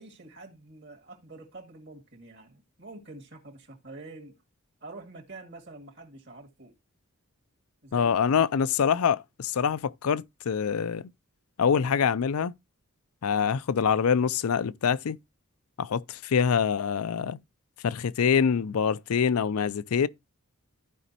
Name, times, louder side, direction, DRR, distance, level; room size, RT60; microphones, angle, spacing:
voice 1, 0.0-4.4 4.8-6.8 7.8-8.1, right 2 dB, 50° right, 2.2 m, -46 dB
voice 2, 7.9-11.1 11.6-12.5 13.2-15.2 15.8-17.4 17.8-20.1, left 7 dB, 80° left, 0.4 m, -25 dB
14.0 x 5.1 x 2.7 m
head